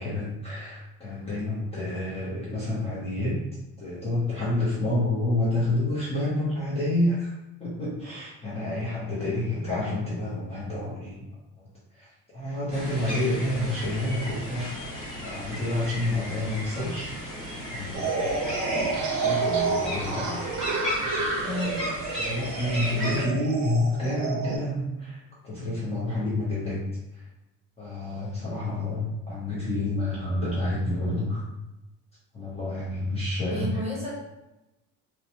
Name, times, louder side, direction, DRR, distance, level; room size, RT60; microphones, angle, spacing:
voice 1, 0.0-3.4 3.8-7.3 7.6-11.2 11.9-14.7 15.2-17.1 17.7-20.4 22.2-26.9 27.1-27.2 27.8-31.5 32.3-33.7, left 1 dB, 20° left, -8 dB, 0.6 m, -29 dB
sound 1, 12.7-23.2, equal, ahead, 1.3 m, -35 dB
sound 2, 17.9-24.6, right 4 dB, 55° right, 0.6 m, -29 dB
voice 2, 21.4-21.8 33.5-34.1, left 1 dB, 20° right, -5 dB, 0.8 m, -32 dB
2.9 x 2.1 x 2.7 m, 0.99 s
cardioid pair, 150°, 34 cm